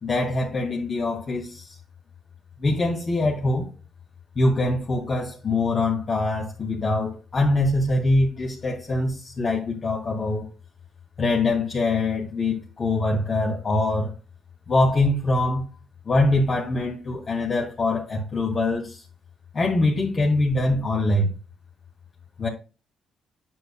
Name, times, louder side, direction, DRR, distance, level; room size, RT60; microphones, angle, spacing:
voice 1, 0.0-1.8 2.6-3.7 4.4-10.5 11.2-14.1 14.7-15.7 16.1-19.0 19.5-21.3 22.4-22.5, left 2 dB, 40° left, 2.4 m, -23 dB
8.9 x 6.8 x 2.2 m
cardioid pair, 90°, 0 cm